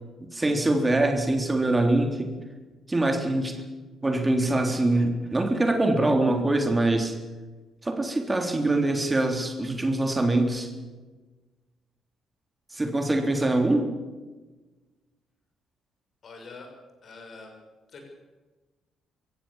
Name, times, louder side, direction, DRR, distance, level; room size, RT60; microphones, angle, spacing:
voice 1, 0.3-2.3 2.9-3.6 4.0-7.2 7.8-10.7 12.7-13.9, right 2 dB, 20° right, 5 dB, 3.6 m, -24 dB
voice 2, 16.2-16.7 17.0-17.5 17.9-18.0, left 3 dB, 45° left, 3 dB, 6.4 m, -44 dB
25.0 x 16.5 x 7.2 m, 1.2 s
figure-of-eight pair, 45°, 0 cm